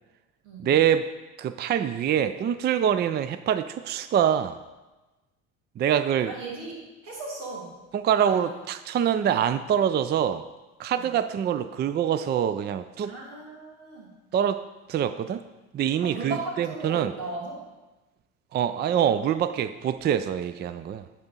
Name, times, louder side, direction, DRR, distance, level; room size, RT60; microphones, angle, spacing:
voice 1, 0.6-1.1 1.4-4.6 5.8-6.3 7.9-10.5 10.8-13.2 14.3-14.6 14.9-15.4 15.7-17.2 18.5-21.1, right 9 dB, 30° right, 13 dB, 0.4 m, -25 dB
voice 2, 6.2-7.8 8.2-8.4 10.9-11.1 13.1-14.1 16.0-17.6, right 2 dB, 85° right, -2 dB, 2.5 m, -36 dB
10.5 x 4.4 x 5.3 m, 1.1 s
supercardioid pair, 80°, 34 cm